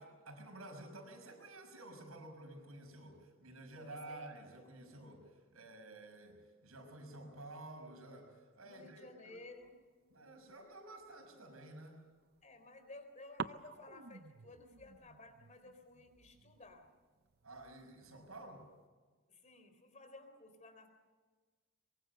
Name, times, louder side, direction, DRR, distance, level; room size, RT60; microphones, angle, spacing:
voice 1, 0.0-9.4 10.1-12.0 17.4-18.7, right 2 dB, 85° right, 4 dB, 6.0 m, -52 dB
voice 2, 3.8-4.3 8.6-9.8 12.4-16.9 19.3-20.9, left 2 dB, 35° left, 7 dB, 3.8 m, -55 dB
sound 1, 9.4-11.6 12.1-13.0 13.4-18.9, right 5 dB, 50° right, 0.6 m, -51 dB
23.5 x 23.0 x 6.8 m, 1.4 s
head